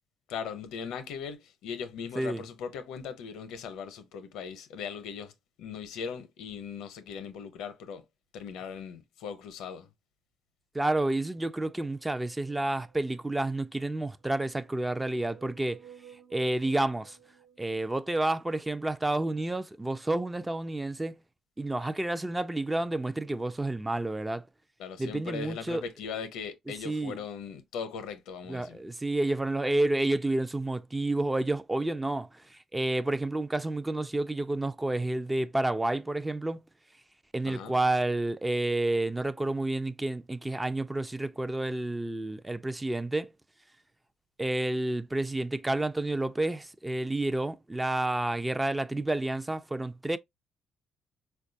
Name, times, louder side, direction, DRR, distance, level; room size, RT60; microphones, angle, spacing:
voice 1, 0.3-5.3 5.6-8.0 8.3-9.9 24.8-28.8 37.4-37.8, left 6 dB, 85° left, 0.6 m, -39 dB
voice 2, 10.7-15.8 16.3-17.2 17.6-21.2 21.6-24.5 25.0-25.8 26.8-27.2 28.5-36.6 37.3-43.3 44.4-50.2, right 2 dB, 15° right, 0.3 m, -30 dB
sound 1, 11.8-13.4 14.2-18.1, right 9 dB, 70° right, 0.7 m, -55 dB
4.4 x 2.3 x 2.6 m
cardioid pair, 85°, 0 cm